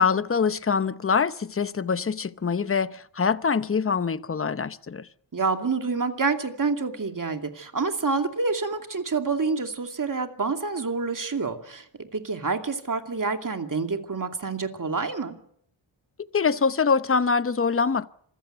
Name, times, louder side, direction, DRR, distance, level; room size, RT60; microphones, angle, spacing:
voice 1, 0.0-5.1 16.3-18.1, left 5 dB, 30° left, 0.8 m, -24 dB
voice 2, 5.3-11.8 12.1-15.3, right 4 dB, 45° right, 2.7 m, -27 dB
26.5 x 15.5 x 8.0 m
wide cardioid pair, 90°, 46 cm